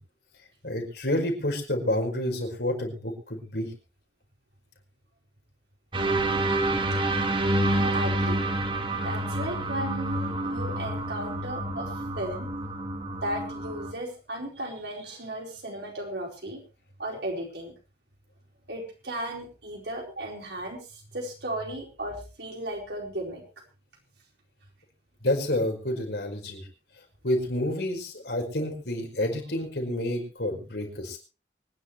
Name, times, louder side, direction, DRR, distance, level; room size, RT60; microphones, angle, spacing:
voice 1, 0.6-3.7 25.2-26.6 27.2-31.2, left 1 dB, 70° left, 2 dB, 5.1 m, -29 dB
sound 1, 5.9-13.9, right 1 dB, 30° right, 1.6 m, -28 dB
voice 2, 7.7-8.4 9.0-12.5 13.2-16.6 17.0-17.7 18.7-23.4, right 1 dB, 75° right, 0 dB, 4.6 m, -35 dB
25.0 x 10.5 x 3.3 m, 0.33 s
head